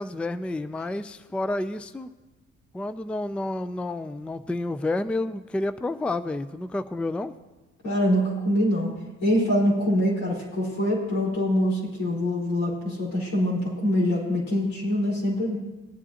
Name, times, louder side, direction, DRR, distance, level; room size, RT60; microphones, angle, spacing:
voice 1, 0.0-2.1 2.7-7.3, left 2 dB, 5° left, 12 dB, 0.3 m, -30 dB
voice 2, 7.8-8.9 9.2-15.6, equal, 90° left, -5 dB, 4.5 m, -24 dB
19.5 x 9.9 x 2.9 m, 1.1 s
cardioid pair, 90°, 30 cm